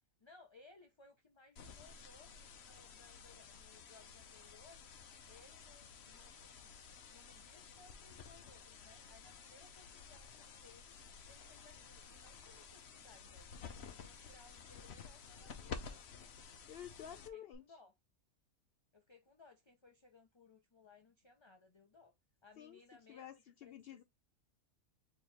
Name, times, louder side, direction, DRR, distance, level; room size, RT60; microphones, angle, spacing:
voice 1, 0.2-4.9 5.3-6.7 7.1-11.0 11.3-13.5 13.8-15.9 17.1-17.9 18.9-22.1 22.4-23.3 23.6-24.0, left 3 dB, 30° left, 0.5 m, -63 dB
sound 1, 1.6-17.6, left 6 dB, 55° left, 0.9 m, -53 dB
voice 2, 16.7-17.6 22.6-22.8 23.1-24.0, left 10 dB, 90° left, 0.5 m, -51 dB
4.6 x 3.1 x 3.3 m
omnidirectional pair, 1.6 m